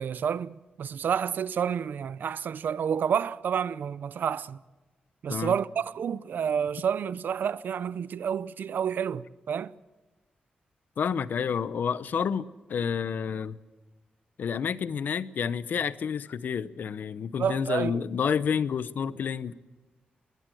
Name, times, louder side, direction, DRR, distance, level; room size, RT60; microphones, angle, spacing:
voice 1, 0.0-4.6 5.2-9.7 17.4-18.3, right 8 dB, 75° right, 0.6 m, -29 dB
voice 2, 11.0-13.6 14.4-19.5, left 7 dB, 70° left, 0.8 m, -29 dB
20.5 x 20.5 x 7.8 m
wide cardioid pair, 145°, 3 cm